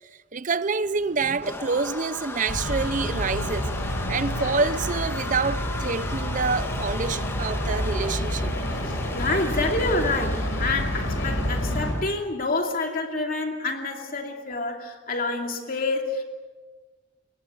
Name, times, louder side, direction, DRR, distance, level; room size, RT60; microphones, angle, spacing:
voice 1, 0.3-3.7 4.1-8.6, right 4 dB, 40° right, 0.7 m, -27 dB
sound 1, 0.8-12.1, left 1 dB, 10° left, 1.3 m, -36 dB
sound 2, 2.5-11.9, equal, 85° left, 4.3 m, -29 dB
voice 2, 8.8-16.2, left 2 dB, 45° left, 2.6 m, -28 dB
26.0 x 22.0 x 6.7 m
head